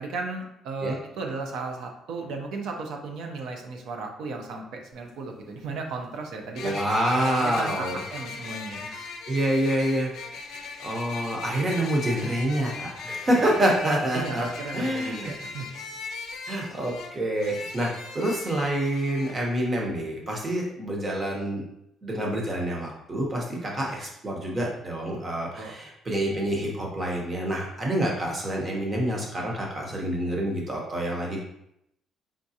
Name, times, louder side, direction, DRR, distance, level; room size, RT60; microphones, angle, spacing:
voice 1, 0.0-6.8 7.2-9.0 13.4-13.6 14.1-15.7 25.6-25.7, right 3 dB, 70° right, 2 dB, 0.7 m, -35 dB
sound 1, 4.9-5.0 6.6-19.3, left 4 dB, 60° left, 0.6 m, -38 dB
voice 2, 6.6-8.0 9.3-10.1 10.8-14.5 14.7-15.3 16.5-21.6 22.0-31.4, right 1 dB, 20° right, -1 dB, 0.9 m, -27 dB
4.6 x 3.7 x 2.7 m, 0.79 s
cardioid pair, 175°, 0 cm